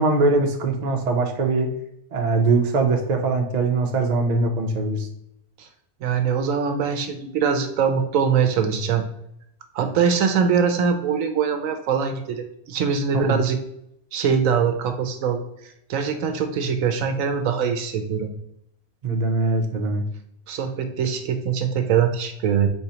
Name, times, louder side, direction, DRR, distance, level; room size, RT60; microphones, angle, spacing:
voice 1, 0.0-1.7 2.1-5.1 13.1-13.4 19.0-20.0, right 3 dB, 50° right, 3 dB, 0.5 m, -22 dB
voice 2, 6.0-9.0 9.7-13.6 14.1-18.3 20.5-22.7, right 6 dB, 70° right, 7 dB, 0.9 m, -23 dB
4.4 x 3.9 x 2.8 m, 0.77 s
omnidirectional pair, 1.6 m